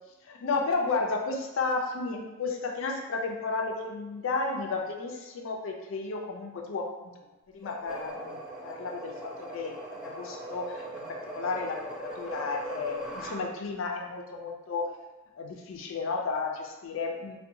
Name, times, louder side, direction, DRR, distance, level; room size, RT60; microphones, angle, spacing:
voice 1, 0.2-7.3 7.5-14.9 15.4-17.4, left 4 dB, 60° left, 1 dB, 0.4 m, -33 dB
sound 1, 7.6-13.4, right 1 dB, 35° right, 1.1 m, -40 dB
2.7 x 2.2 x 2.5 m, 1.1 s
head